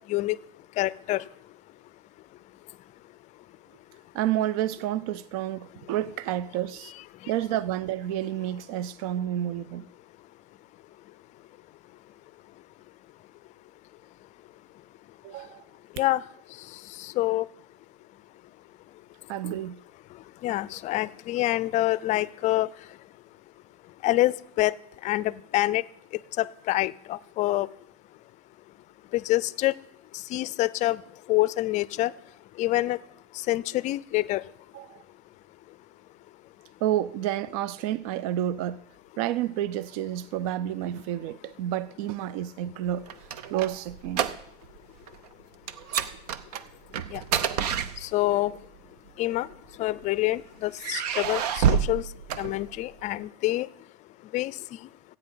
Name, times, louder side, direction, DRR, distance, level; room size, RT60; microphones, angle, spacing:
voice 1, 0.8-1.2 16.0-16.2 17.0-17.4 20.4-22.7 24.0-24.7 25.0-25.8 26.4-27.7 29.1-29.7 30.3-31.0 31.3-32.1 32.6-33.0 33.5-34.4 47.1-47.2 48.0-48.5 49.2-49.5 49.8-52.0 52.4-53.7 54.3-54.5, left 17 dB, 40° left, 0.4 m, -26 dB
voice 2, 4.1-6.9 7.3-9.9 15.2-15.7 19.3-19.8 34.7-35.0 36.8-38.8 39.2-43.1 43.4-44.3, right 12 dB, 65° right, 0.5 m, -30 dB
sound 1, 42.9-44.8 45.0-45.3 45.7-48.5 49.3-50.2 50.8-53.1, right 8 dB, 85° right, 0.8 m, -28 dB
15.0 x 9.0 x 5.6 m
supercardioid pair, 135°, 20 cm